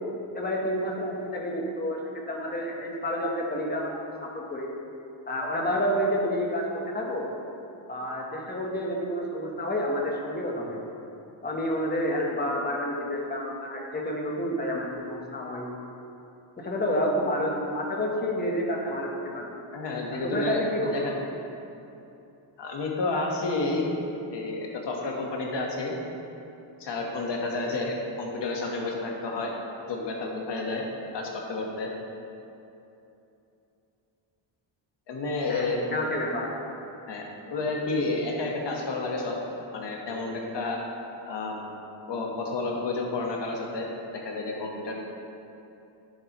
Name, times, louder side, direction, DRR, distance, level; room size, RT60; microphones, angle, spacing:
voice 1, 0.3-2.0 2.3-4.7 5.3-7.3 7.9-10.9 11.4-15.7 16.6-19.6 20.1-21.1 35.5-36.5, equal, 20° left, -1 dB, 1.1 m, -29 dB
voice 2, 19.7-20.6 20.9-21.1 22.6-23.8 24.3-25.9 26.8-29.5 29.9-30.8 31.1-31.9 35.1-35.8 37.1-39.4 39.7-40.8 41.3-41.6 42.1-43.9 44.1-45.0, left 3 dB, 60° left, 0 dB, 1.4 m, -30 dB
10.5 x 7.2 x 3.0 m, 2.8 s
wide cardioid pair, 145°, 48 cm